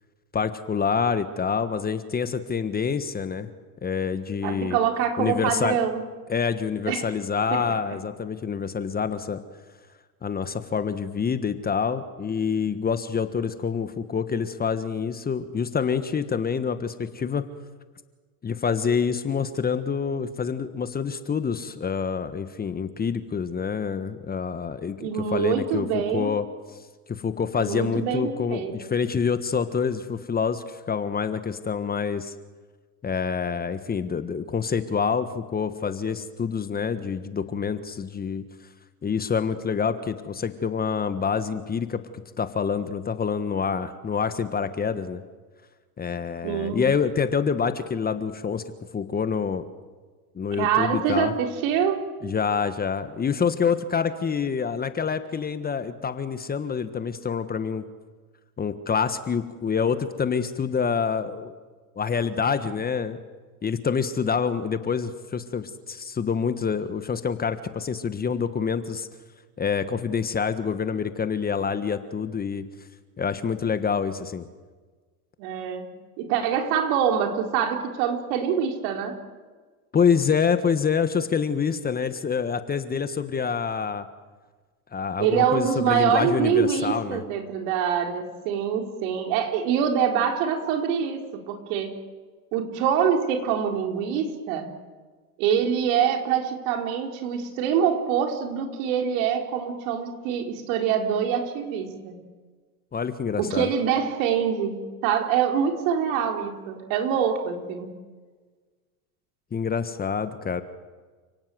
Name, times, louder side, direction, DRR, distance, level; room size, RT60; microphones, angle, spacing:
voice 1, 0.3-3.5 3.8-4.8 5.2-5.8 6.3-9.4 10.2-17.4 18.4-26.5 27.1-32.3 33.0-38.4 39.0-45.2 46.0-48.6 48.9-49.6 50.3-51.3 52.2-57.9 58.6-61.5 61.9-63.2 63.6-69.1 69.6-72.7 73.2-74.5 79.9-84.0 84.9-87.2 102.9-103.7 109.5-110.6, left 6 dB, 20° left, 11 dB, 1.4 m, -27 dB
voice 2, 4.4-6.0 6.9-7.1 7.5-7.6 25.0-26.3 27.6-28.7 46.4-46.8 50.6-52.0 75.4-75.9 76.2-79.2 85.2-91.9 92.5-94.7 95.4-102.2 103.4-107.9, right 8 dB, 60° right, 3 dB, 4.2 m, -25 dB
30.0 x 17.5 x 7.9 m, 1.4 s
hypercardioid pair, 100°, 45 cm